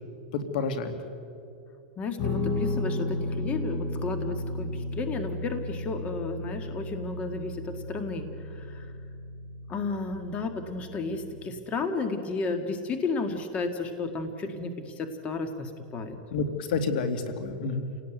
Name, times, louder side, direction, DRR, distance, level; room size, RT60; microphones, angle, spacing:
voice 1, 0.3-0.9 16.3-17.9, left 4 dB, 70° left, 8 dB, 2.5 m, -29 dB
voice 2, 2.0-8.9 9.7-16.2, left 3 dB, 25° left, 7 dB, 1.8 m, -33 dB
Guitar, 2.2-11.5, left 2 dB, 45° left, 6.5 m, -34 dB
29.0 x 18.0 x 9.3 m, 2.6 s
supercardioid pair, 145°, 5 cm